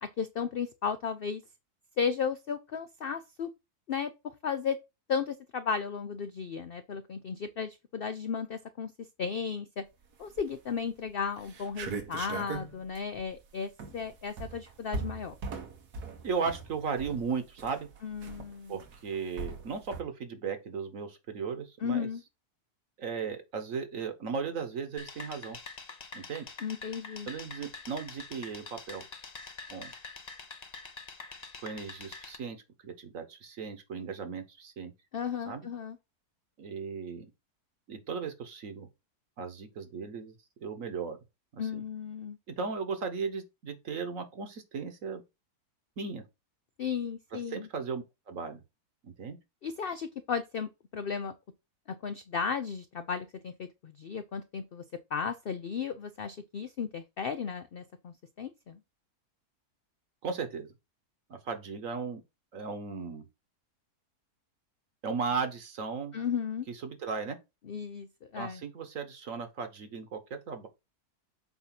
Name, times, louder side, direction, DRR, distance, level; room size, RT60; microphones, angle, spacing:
voice 1, 0.0-1.4 2.0-3.5 3.9-4.1 4.4-4.8 5.1-8.9 9.2-9.8 10.2-15.3 18.0-18.7 21.8-22.2 26.6-27.3 35.1-36.0 41.6-42.4 46.8-47.7 49.6-51.3 51.9-54.8 55.1-58.8 66.1-66.7 67.7-68.1 68.3-68.6, left 6 dB, 70° left, 0.5 m, -34 dB
sound 1, 10.2-10.7 11.1-11.2 11.4-20.0, right 4 dB, 85° right, 1.7 m, -40 dB
voice 2, 16.2-17.9 18.7-22.1 23.0-25.6 26.1-26.5 27.3-29.0 29.7-29.9 31.6-32.6 32.8-34.9 35.5-35.7 36.6-37.3 37.9-38.9 39.4-40.3 40.6-41.2 41.5-41.8 42.5-45.2 46.0-46.2 47.5-48.6 49.0-49.4 60.2-60.7 61.3-62.2 62.5-63.2 65.0-66.2 66.7-67.4 68.4-70.7, right 5 dB, 60° right, 1.5 m, -36 dB
sound 2, 25.0-32.3, left 4 dB, 35° left, 0.7 m, -45 dB
8.0 x 2.7 x 5.8 m
omnidirectional pair, 1.6 m